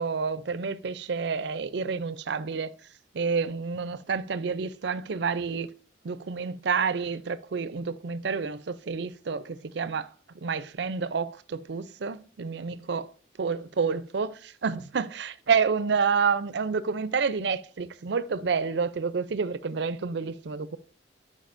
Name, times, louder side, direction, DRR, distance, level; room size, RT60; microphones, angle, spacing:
voice 1, 0.0-2.7 3.1-5.7 6.0-10.1 10.4-13.0 13.4-20.8, right 5 dB, 60° right, 0.4 m, -29 dB
11.5 x 5.0 x 2.6 m
head